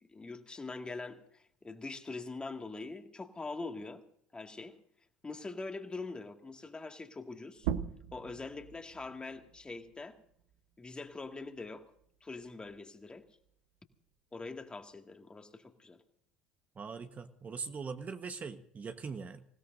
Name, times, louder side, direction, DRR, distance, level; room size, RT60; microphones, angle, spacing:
voice 1, 0.1-4.0 4.3-4.8 5.2-7.7 8.1-10.2 10.8-11.8 12.2-13.3 14.3-16.0, left 3 dB, 20° left, 2.1 m, -43 dB
sound 1, 7.6-12.8 13.2-15.0, right 10 dB, 75° right, 1.1 m, -43 dB
voice 2, 16.8-19.4, right 5 dB, 35° right, 1.3 m, -41 dB
26.5 x 17.0 x 2.7 m
hypercardioid pair, 70°, 5 cm